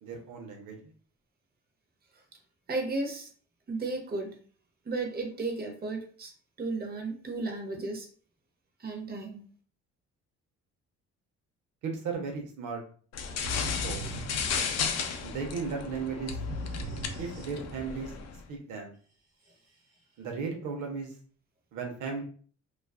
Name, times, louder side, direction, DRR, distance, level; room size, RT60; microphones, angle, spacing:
voice 1, 0.0-0.8 11.8-12.8 13.8-14.0 15.2-16.4 17.2-18.1 18.5-18.9 20.2-21.1 21.7-22.2, right 5 dB, 80° right, 2 dB, 0.7 m, -35 dB
voice 2, 2.7-3.3 3.7-4.4 4.8-6.3 6.6-8.1 8.8-9.4, right 3 dB, 30° right, 2 dB, 0.7 m, -34 dB
sound 1, 13.1-18.4, left 6 dB, 60° left, 0.5 m, -34 dB
sound 2, 13.4-15.2 16.3-17.9, equal, 55° right, 1.1 m, -38 dB
2.4 x 2.3 x 2.3 m, 0.43 s
cardioid pair, 90°, 30 cm